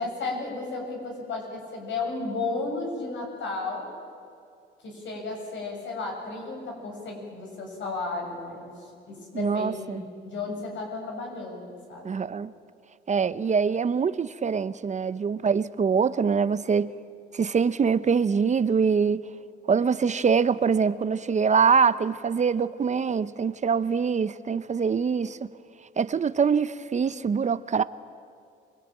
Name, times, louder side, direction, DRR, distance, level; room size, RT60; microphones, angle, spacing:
voice 1, 0.0-3.9 4.8-12.2, left 3 dB, 70° left, 7.5 m, -34 dB
voice 2, 9.3-10.0 12.0-12.5 13.1-16.9 17.3-19.2 19.7-25.4 26.0-27.8, right 6 dB, 35° right, 0.7 m, -24 dB
27.0 x 20.5 x 9.0 m
cardioid pair, 90°, 20 cm